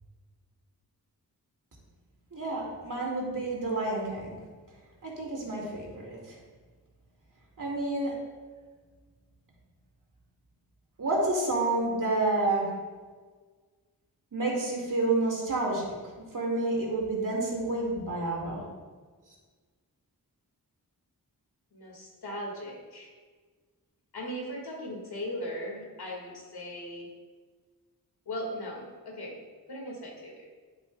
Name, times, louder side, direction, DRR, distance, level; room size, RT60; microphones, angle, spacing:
voice 1, 2.3-4.4 5.0-6.4 7.6-8.1 11.0-12.7 14.3-18.6, right 2 dB, 55° right, -3 dB, 2.3 m, -29 dB
voice 2, 21.7-23.1 24.1-27.1 28.3-29.4 29.7-30.4, equal, 85° left, -1 dB, 2.0 m, -38 dB
10.5 x 7.0 x 2.3 m, 1.4 s
wide cardioid pair, 85°, 37 cm